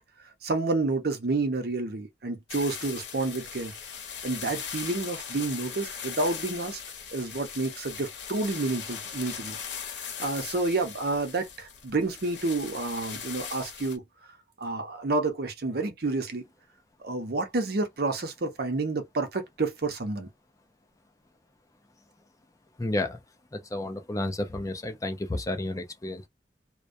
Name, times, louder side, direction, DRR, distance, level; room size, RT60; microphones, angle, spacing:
voice 1, 0.4-3.8 4.2-6.8 7.1-9.6 10.2-14.0 14.6-16.4 17.0-20.3, right 3 dB, 60° right, 0.7 m, -29 dB
sound 1, 2.5-14.0, left 7 dB, 75° left, 0.8 m, -39 dB
voice 2, 22.8-23.2 23.5-26.3, left 2 dB, 20° left, 0.4 m, -31 dB
2.2 x 2.2 x 2.6 m
head